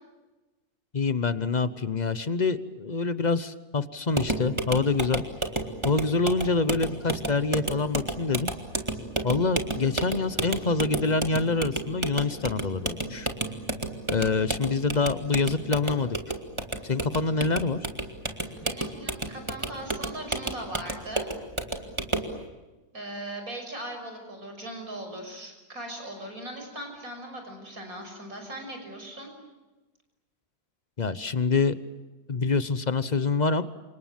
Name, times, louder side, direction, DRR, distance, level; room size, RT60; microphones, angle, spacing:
voice 1, 0.9-5.2 5.8-8.5 9.2-13.3 14.1-16.2 16.8-17.8 31.0-31.7 32.3-33.6, left 4 dB, 35° left, 13 dB, 0.9 m, -26 dB
sound 1, 4.1-22.4, right 2 dB, 20° right, 2.2 m, -32 dB
voice 2, 18.6-21.3 22.9-29.3, right 1 dB, 65° right, 4 dB, 6.6 m, -39 dB
29.5 x 26.0 x 7.5 m, 1.2 s
omnidirectional pair, 1.6 m